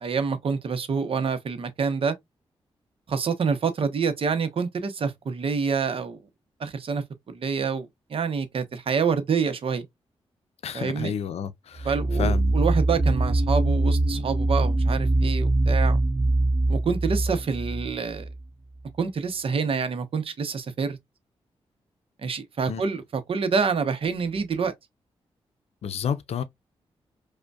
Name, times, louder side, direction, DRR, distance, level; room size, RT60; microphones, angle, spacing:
voice 1, 0.0-2.2 3.1-6.2 6.6-9.9 10.7-11.1 11.8-16.0 16.7-18.3 19.0-21.0 22.2-24.7, right 5 dB, 60° right, 0.8 m, -27 dB
voice 2, 10.6-11.9 12.2-12.5 22.7-22.8 25.8-26.4, left 7 dB, 75° left, 0.5 m, -30 dB
sound 1, 11.8-18.4, right 2 dB, 20° right, 0.4 m, -23 dB
5.0 x 2.2 x 2.3 m
cardioid pair, 80°, 11 cm